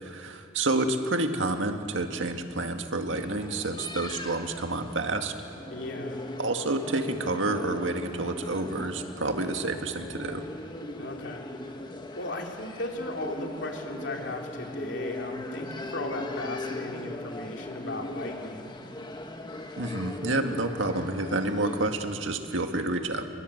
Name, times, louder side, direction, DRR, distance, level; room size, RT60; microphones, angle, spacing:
voice 1, 0.0-5.4 6.4-10.5 19.8-23.2, right 2 dB, 90° right, 5 dB, 1.9 m, -29 dB
sound 1, 3.1-21.9, left 1 dB, 25° left, 1.4 m, -39 dB
voice 2, 5.7-6.3 11.0-11.4 12.2-18.8, left 2 dB, 70° left, 1 dB, 3.3 m, -36 dB
29.0 x 22.0 x 8.0 m, 2.7 s
head